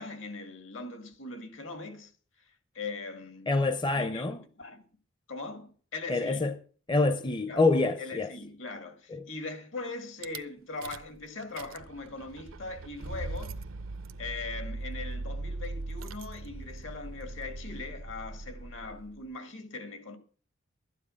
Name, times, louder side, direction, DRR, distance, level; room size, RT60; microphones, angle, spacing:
voice 1, 0.0-2.1 2.7-3.5 3.9-4.8 5.3-6.5 7.5-7.6 8.0-13.6 14.2-20.2, left 3 dB, 70° left, 2.0 m, -40 dB
voice 2, 3.5-4.4 6.1-6.6 6.9-8.3 9.1-9.3, left 3 dB, 25° left, 0.6 m, -26 dB
Rattle / Car / Engine starting, 10.2-10.4 10.8-11.2 11.4-19.2, right 2 dB, 90° right, 0.7 m, -40 dB
12.5 x 9.8 x 6.3 m
head